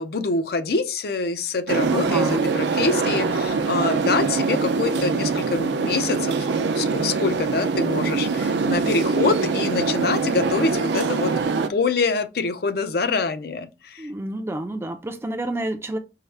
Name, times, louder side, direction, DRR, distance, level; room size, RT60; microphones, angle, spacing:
voice 1, 0.0-11.3 11.7-14.1, left 4 dB, 60° left, 0.5 m, -25 dB
sound 1, 1.7-11.7, right 4 dB, 80° right, 0.5 m, -23 dB
voice 2, 1.8-2.4 14.0-16.0, right 1 dB, 15° right, 0.4 m, -29 dB
4.6 x 2.1 x 3.2 m
head